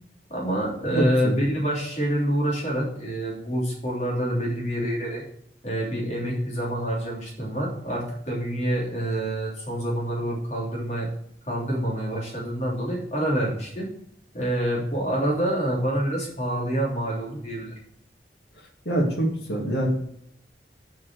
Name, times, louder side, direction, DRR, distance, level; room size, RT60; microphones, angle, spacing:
voice 1, 0.3-5.2 5.6-11.1 11.5-13.9 14.3-17.7, equal, 40° left, -4 dB, 3.4 m, -27 dB
voice 2, 0.9-1.3 18.9-20.0, right 1 dB, 70° left, 0 dB, 2.5 m, -24 dB
7.6 x 6.0 x 6.2 m, 0.68 s
head